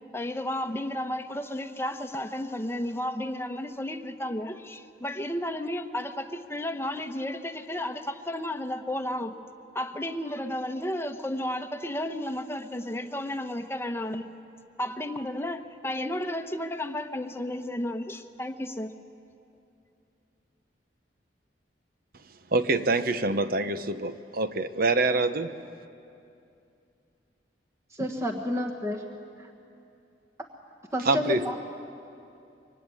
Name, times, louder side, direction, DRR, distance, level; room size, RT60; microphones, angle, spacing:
voice 1, 0.1-9.3 9.7-14.3 14.8-18.9, left 1 dB, 15° left, 7 dB, 1.0 m, -33 dB
voice 2, 22.5-25.5 31.0-31.5, right 2 dB, 55° right, 11 dB, 1.0 m, -25 dB
voice 3, 27.9-29.0 30.9-31.6, equal, 15° right, 1 dB, 1.4 m, -30 dB
25.0 x 23.5 x 9.8 m, 2.6 s
head